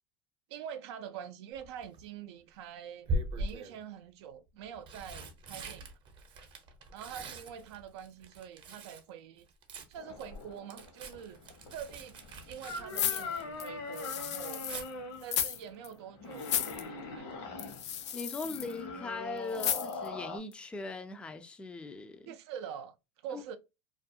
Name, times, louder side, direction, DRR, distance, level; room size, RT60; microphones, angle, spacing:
voice 1, 0.5-3.1 3.4-5.9 6.9-9.5 9.9-11.4 11.7-12.2 12.5-14.6 15.2-17.4 22.3-22.9 23.2-23.6, right 8 dB, 70° right, 0.4 m, -45 dB
Tearing, 1.6-2.0 3.1-3.8 4.6-9.1 9.4-13.7 14.0-14.9 16.7-17.0 17.3-17.4, right 1 dB, 35° right, 0.6 m, -41 dB
sound 1, 10.0-20.4, left 3 dB, 70° left, 0.9 m, -43 dB
sound 2, 12.9-14.9 15.2-15.6 15.8-15.9 16.4-16.8 17.6-18.7 19.6-20.1 20.5-20.6, left 9 dB, 90° left, 0.4 m, -34 dB
voice 2, 18.1-22.3 23.3-23.4, left 3 dB, 5° left, 0.3 m, -40 dB
2.4 x 2.2 x 2.6 m
supercardioid pair, 120°, 14 cm